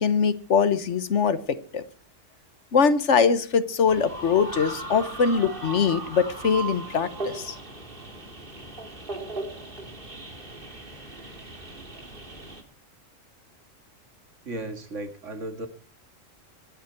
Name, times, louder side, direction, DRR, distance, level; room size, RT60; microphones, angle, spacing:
voice 1, 0.0-1.8 2.7-7.5, left 6 dB, 65° left, 13 dB, 1.4 m, -22 dB
sound 1, 3.9-12.6, right 3 dB, 45° right, 2.7 m, -37 dB
voice 2, 14.5-15.7, right 2 dB, 70° right, 7 dB, 2.4 m, -35 dB
25.0 x 9.7 x 4.6 m, 0.42 s
omnidirectional pair, 1.3 m